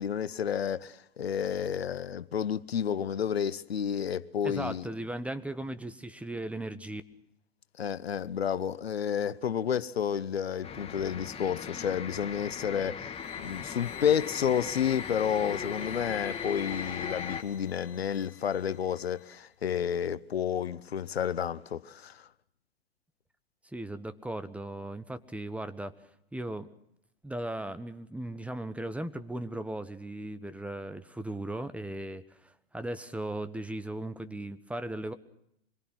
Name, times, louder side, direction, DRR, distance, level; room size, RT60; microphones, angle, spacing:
voice 1, 0.0-4.9 7.8-22.2, left 8 dB, 80° left, 0.8 m, -31 dB
voice 2, 4.4-7.0 23.7-25.9 26.3-26.7 27.2-35.1, right 1 dB, 5° right, 1.2 m, -37 dB
sound 1, 10.6-17.4, left 6 dB, 20° left, 2.2 m, -38 dB
sound 2, 13.1-19.4, left 11 dB, 60° left, 3.1 m, -51 dB
26.0 x 22.0 x 6.1 m
figure-of-eight pair, 95°, 30 cm